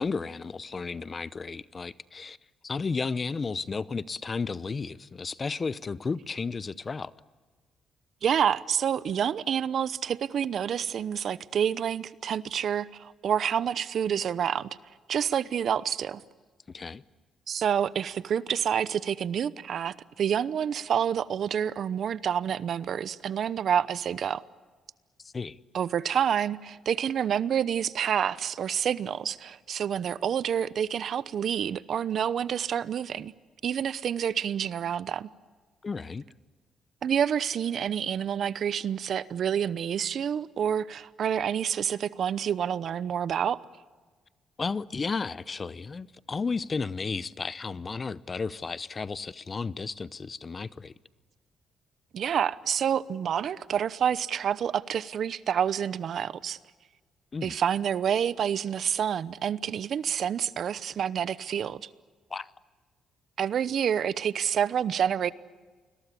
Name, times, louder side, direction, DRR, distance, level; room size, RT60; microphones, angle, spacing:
voice 1, 0.0-2.4 2.6-7.1 16.7-17.0 25.2-25.6 35.8-36.2 44.6-50.9 57.3-57.5 62.3-62.5, left 4 dB, 35° left, 0.8 m, -33 dB
voice 2, 8.2-14.7 15.1-16.2 17.5-24.4 25.7-33.3 33.6-35.3 37.0-43.6 52.1-56.6 57.4-61.9 63.4-65.3, right 8 dB, 60° right, 0.9 m, -28 dB
29.5 x 21.5 x 8.5 m
cardioid pair, 90°, 0 cm